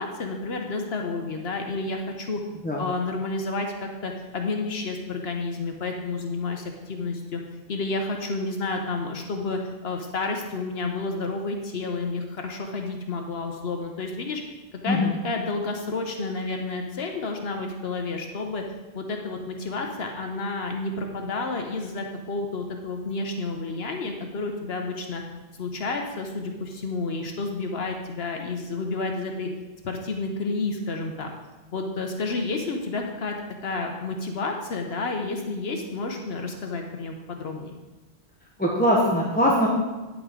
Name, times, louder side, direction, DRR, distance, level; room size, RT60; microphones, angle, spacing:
voice 1, 0.0-2.4 2.8-7.4 7.7-14.4 14.8-15.0 15.2-18.6 18.9-25.2 25.6-29.5 29.8-31.3 31.7-33.4 33.6-37.7, left 3 dB, 70° left, 3 dB, 1.1 m, -30 dB
voice 2, 38.6-39.7, equal, 10° left, -3 dB, 1.0 m, -21 dB
9.6 x 8.4 x 3.7 m, 1.2 s
omnidirectional pair, 1.1 m